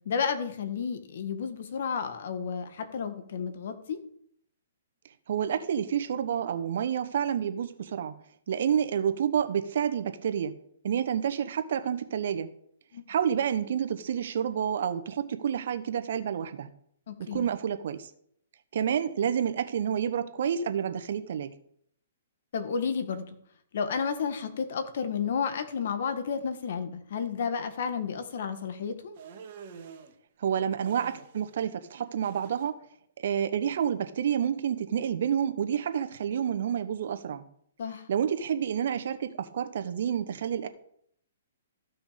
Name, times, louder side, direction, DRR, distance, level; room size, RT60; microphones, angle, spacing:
voice 1, 0.0-4.0 12.9-13.0 17.1-17.5 22.5-23.4 23.7-29.1 37.8-38.0, left 6 dB, 60° left, 9 dB, 1.6 m, -32 dB
voice 2, 5.3-8.1 8.5-10.5 10.8-12.5 13.1-16.7 17.3-18.1 18.7-21.5 30.4-32.7 33.2-37.4 38.1-40.7, right 8 dB, 65° right, 9 dB, 1.1 m, -29 dB
sound 1, 29.2-30.1 30.8-31.6 31.8-32.7, right 6 dB, 45° right, 1.9 m, -47 dB
14.0 x 6.1 x 5.2 m, 0.68 s
hypercardioid pair, 150°, 0 cm